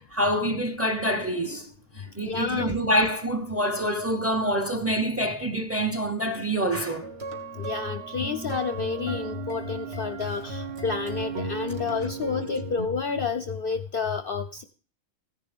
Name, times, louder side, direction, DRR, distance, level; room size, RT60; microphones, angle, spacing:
voice 1, 0.0-7.1, equal, 10° right, 1.1 m, -26 dB
voice 2, 2.2-2.7 7.6-14.6, left 5 dB, 50° left, 0.7 m, -29 dB
sound 1, 7.0-12.8, right 4 dB, 55° right, 1.8 m, -36 dB
15.5 x 10.5 x 3.6 m
omnidirectional pair, 1.4 m